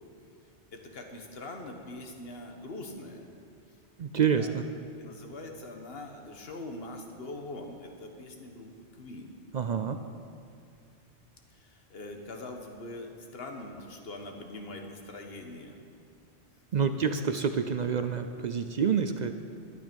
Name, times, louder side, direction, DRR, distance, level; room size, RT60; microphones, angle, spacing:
voice 1, 0.7-3.3 4.3-4.5 5.0-9.4 11.5-15.8 17.0-17.2, left 2 dB, 60° left, 3 dB, 1.4 m, -43 dB
voice 2, 4.0-4.6 9.5-10.0 16.7-19.3, right 6 dB, 55° right, 8 dB, 0.5 m, -28 dB
12.0 x 11.0 x 5.2 m, 2.4 s
omnidirectional pair, 1.2 m